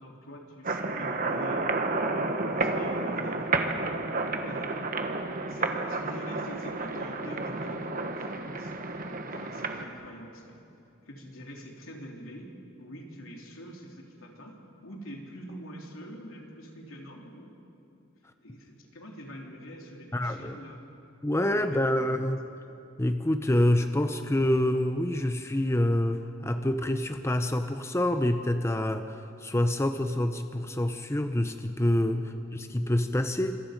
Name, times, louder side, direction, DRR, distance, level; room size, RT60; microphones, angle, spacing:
voice 1, 0.0-1.8 2.3-5.0 5.5-8.7 9.2-10.6 11.1-12.5 12.8-14.5 14.8-17.6 18.4-20.8 21.3-22.2 32.1-32.6, equal, 80° left, 0 dB, 3.5 m, -45 dB
sound 1, 0.6-9.8, right 3 dB, 45° right, 1.4 m, -31 dB
voice 2, 20.1-20.6 21.2-22.4 23.0-32.3 32.5-33.6, left 1 dB, 15° left, 7 dB, 0.7 m, -27 dB
26.5 x 26.5 x 5.2 m, 2.7 s
head